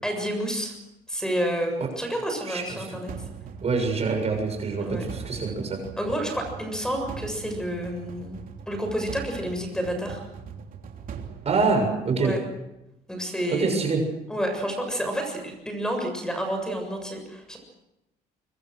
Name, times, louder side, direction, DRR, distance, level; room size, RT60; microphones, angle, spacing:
voice 1, 0.0-0.7 1.1-3.1 4.8-5.0 6.0-8.4 8.7-10.2 12.2-12.4 13.1-13.9 14.3-17.6, equal, 5° left, 5 dB, 7.3 m, -29 dB
voice 2, 2.5-3.0 3.6-5.8 11.5-12.4 13.5-14.0, right 4 dB, 40° right, 4 dB, 6.9 m, -25 dB
sound 1, 3.1-12.3, right 7 dB, 55° right, 3.2 m, -41 dB
24.5 x 24.0 x 6.5 m, 0.92 s
cardioid pair, 110°, 17 cm